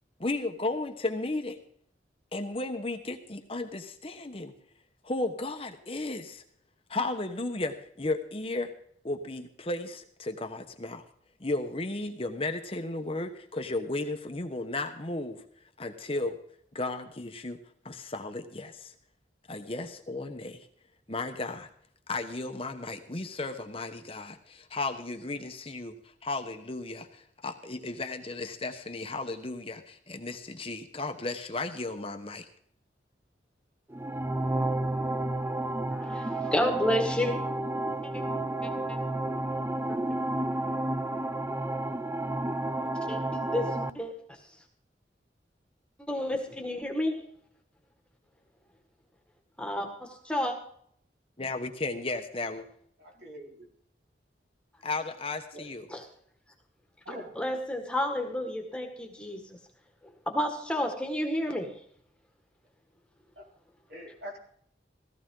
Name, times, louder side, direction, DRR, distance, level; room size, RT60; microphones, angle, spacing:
voice 1, 0.2-1.6 2.3-4.5 5.0-6.4 6.9-8.7 9.0-11.0 11.4-15.4 15.8-16.4 16.7-17.6 17.8-18.9 19.5-20.7 21.1-21.7 22.1-26.0 26.2-32.5 51.4-52.6 54.8-55.9, left 2 dB, 30° left, 6 dB, 1.1 m, -34 dB
sound 1, 33.9-43.9, right 1 dB, 15° right, 0.4 m, -31 dB
voice 2, 35.9-37.4 39.9-40.0 43.1-44.1 46.1-47.2 49.6-49.9 50.3-50.5 55.9-56.0 57.4-59.4 60.3-61.7, left 1 dB, 5° left, 3 dB, 1.8 m, -30 dB
voice 3, 53.0-53.7 55.5-55.6 57.0-57.3 63.4-63.5 63.9-64.4, equal, 65° right, -1 dB, 4.4 m, -43 dB
17.0 x 14.0 x 3.8 m, 0.64 s
head